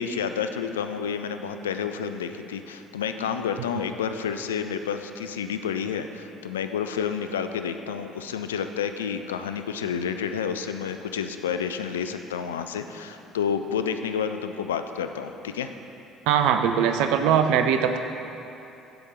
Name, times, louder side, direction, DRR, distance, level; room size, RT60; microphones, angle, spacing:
voice 1, 0.0-15.7, left 7 dB, 85° left, 8 dB, 0.4 m, -30 dB
voice 2, 16.3-18.0, right 8 dB, 70° right, 7 dB, 0.6 m, -21 dB
14.5 x 5.1 x 4.3 m, 2.9 s
hypercardioid pair, 55°, 0 cm